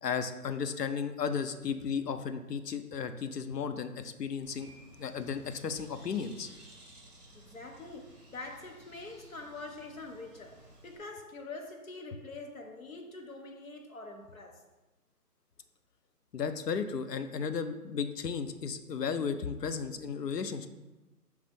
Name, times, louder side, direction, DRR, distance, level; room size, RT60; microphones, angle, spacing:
voice 1, 0.0-4.7 5.0-6.5 16.3-20.7, left 6 dB, 80° left, 0.7 m, -34 dB
Bird, 4.4-11.0, right 1 dB, 25° right, 1.3 m, -56 dB
voice 2, 7.3-14.6, left 3 dB, 60° left, 1.0 m, -45 dB
5.5 x 3.3 x 5.2 m
hypercardioid pair, 175°, 47 cm